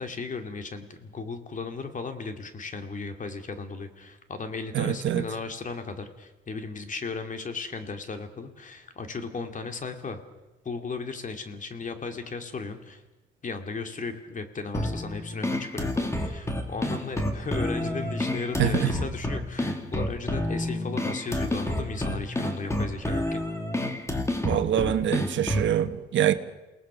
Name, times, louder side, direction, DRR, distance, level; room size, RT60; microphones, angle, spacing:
voice 1, 0.0-10.2 10.6-13.0 13.4-23.4, left 4 dB, 40° left, 2.6 m, -36 dB
voice 2, 4.7-5.2 18.6-18.9 24.4-26.3, right 10 dB, 70° right, 1.3 m, -25 dB
sound 1, 14.7-25.8, left 1 dB, 15° left, 2.8 m, -29 dB
28.5 x 19.0 x 6.2 m
cardioid pair, 90°, 20 cm